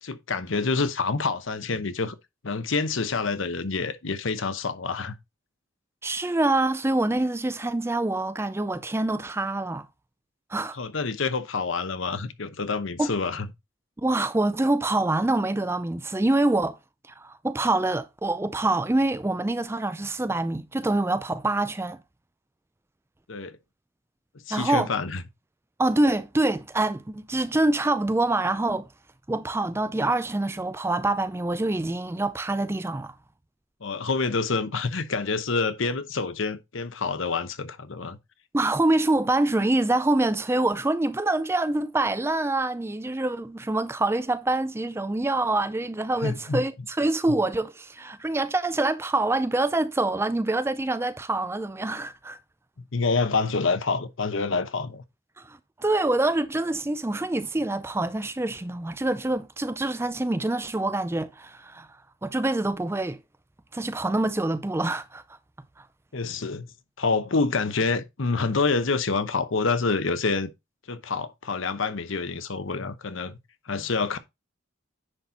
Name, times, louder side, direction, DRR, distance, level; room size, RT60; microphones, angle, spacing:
voice 1, 0.0-2.1 2.4-5.1 10.7-13.5 23.3-23.6 24.5-25.2 33.8-38.2 46.2-46.6 52.9-55.0 66.1-66.7 67.0-70.5 70.9-73.4 73.7-74.2, left 4 dB, 65° left, 0.9 m, -27 dB
voice 2, 6.0-9.9 10.5-10.8 13.0-13.1 14.0-16.8 17.2-22.0 24.5-24.9 25.8-28.9 29.3-33.1 38.5-52.4 55.4-61.9 62.2-63.2 63.7-65.2 65.8-65.9, right 2 dB, 10° right, 0.4 m, -25 dB
10.0 x 4.2 x 4.1 m
head